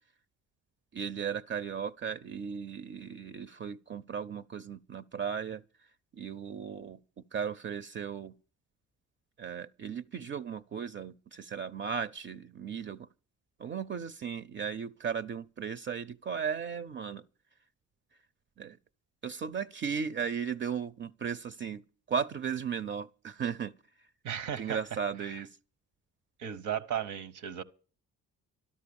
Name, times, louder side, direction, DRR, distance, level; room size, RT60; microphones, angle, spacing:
voice 1, 0.9-5.6 6.1-7.0 7.3-8.3 9.4-13.1 13.6-17.2 18.6-18.8 19.2-21.8 22.1-23.7 24.6-25.6, right 7 dB, 40° right, 0.6 m, -36 dB
voice 2, 24.2-24.8 25.2-25.3 26.4-27.6, right 9 dB, 75° right, 1.1 m, -35 dB
13.0 x 11.5 x 7.0 m
cardioid pair, 90°, 30 cm